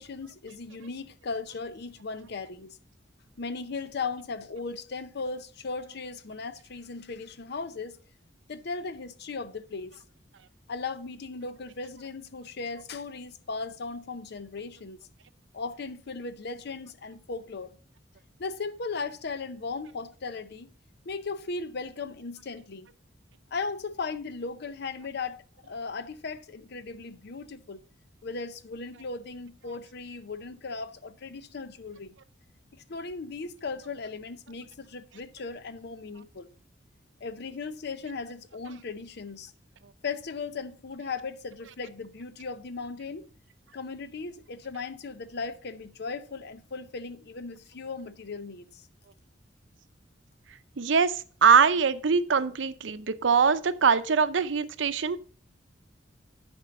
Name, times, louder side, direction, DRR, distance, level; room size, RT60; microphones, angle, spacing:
voice 1, 0.0-2.8 3.4-8.0 8.5-10.0 10.7-15.0 15.5-17.8 18.4-20.7 21.1-22.9 23.5-27.8 28.2-32.1 32.7-36.5 37.2-39.5 40.0-43.3 43.7-48.9, left 4 dB, 60° left, 0.6 m, -37 dB
voice 2, 50.8-55.2, right 6 dB, 80° right, 0.6 m, -23 dB
11.0 x 4.5 x 5.1 m
head